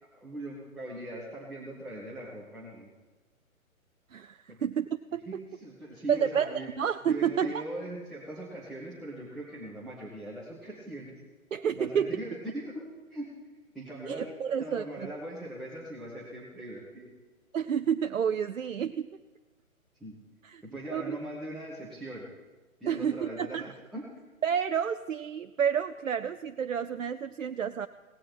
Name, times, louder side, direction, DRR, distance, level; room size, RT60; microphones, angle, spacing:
voice 1, 0.1-2.9 4.5-4.6 5.3-6.7 7.0-11.2 11.7-12.8 13.1-13.3 13.7-14.3 14.6-17.1 20.0-20.2 20.6-22.3 22.8-24.1, right 1 dB, ahead, -9 dB, 0.4 m, -40 dB
voice 2, 4.1-5.4 6.1-7.6 11.5-12.2 14.1-15.1 17.5-19.1 20.4-20.6 20.9-21.2 22.9-23.7 24.4-27.9, right 8 dB, 65° right, 9 dB, 0.6 m, -30 dB
17.5 x 15.5 x 4.4 m, 1.3 s
figure-of-eight pair, 135°, 42 cm